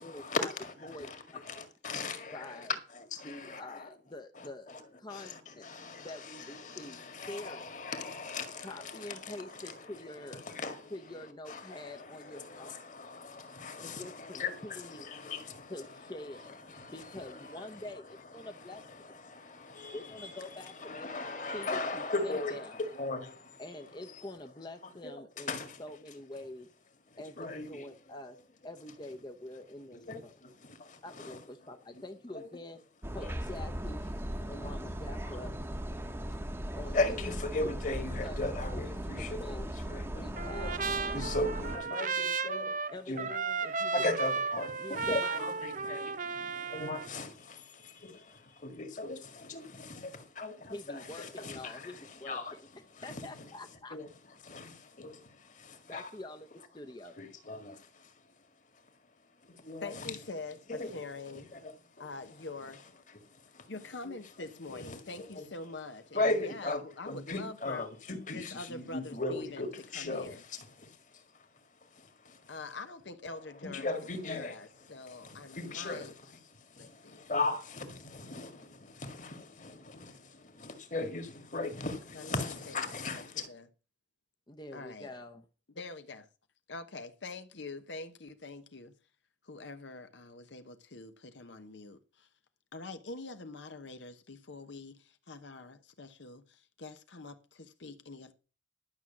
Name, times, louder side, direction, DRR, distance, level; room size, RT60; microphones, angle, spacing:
voice 1, 0.0-3.9 4.3-24.3 24.8-26.0 26.3-26.4 27.1-28.2 29.9-31.5 31.9-32.0 32.3-32.5 33.2-33.4 34.4-34.7 36.3-36.4 36.9-40.8 41.1-43.3 43.7-56.2 57.2-60.2 60.7-63.7 64.0-65.5 66.1-72.6 73.4-83.5, left 2 dB, 45° left, 1.9 m, -39 dB
voice 2, 0.8-1.4 2.3-2.7 3.2-5.6 6.0-7.7 8.6-10.4 10.9-12.7 13.8-15.1 15.7-16.5 16.9-18.8 19.9-21.1 21.5-22.8 23.6-25.5 25.8-26.7 27.2-28.4 28.6-30.3 31.0-32.8 33.1-34.1 34.5-35.6 36.8-37.2 37.9-38.0 38.2-38.4 38.7-39.0 39.4-39.7 40.1-40.7 42.9-44.2 44.8-45.4 50.7-52.6 53.0-54.0 55.9-57.2 84.5-85.4, left 1 dB, 25° left, 0.8 m, -46 dB
sound 1, 33.0-41.8, equal, 15° right, 1.0 m, -38 dB
Trumpet, 40.4-47.1, right 4 dB, 45° right, 0.7 m, -34 dB
voice 3, 59.8-61.4 62.0-62.8 63.7-67.8 68.3-69.7 70.0-70.4 72.5-76.1 76.8-77.3 82.2-82.7 83.1-83.6 84.7-85.1 85.8-86.3 86.7-88.9 89.4-92.3 92.7-98.3, left 3 dB, 80° left, 1.0 m, -45 dB
12.0 x 6.3 x 7.2 m
head